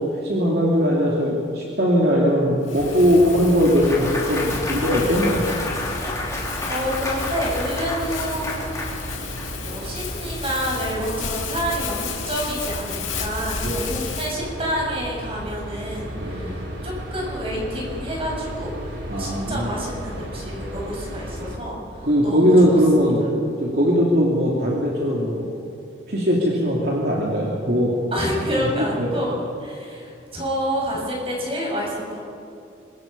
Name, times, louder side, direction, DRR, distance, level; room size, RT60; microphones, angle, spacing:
voice 1, 0.0-5.5 13.6-13.9 16.1-16.6 19.1-19.7 22.0-23.2 23.6-25.4 26.1-27.9 28.5-29.2, equal, 55° right, -4 dB, 3.1 m, -20 dB
Crumpling crinkling, 2.6-14.3, left 7 dB, 90° left, 2.9 m, -34 dB
sound 1, 2.8-21.6, equal, 80° right, 3.2 m, -34 dB
Clapping / Cheering / Applause, 3.2-9.5, left 2 dB, 15° left, 3.1 m, -30 dB
voice 2, 6.3-8.5 9.6-18.7 19.2-21.8 22.2-22.8 28.1-29.3 29.6-32.2, equal, 30° right, -2 dB, 6.8 m, -28 dB
25.0 x 22.5 x 5.6 m, 2.7 s
head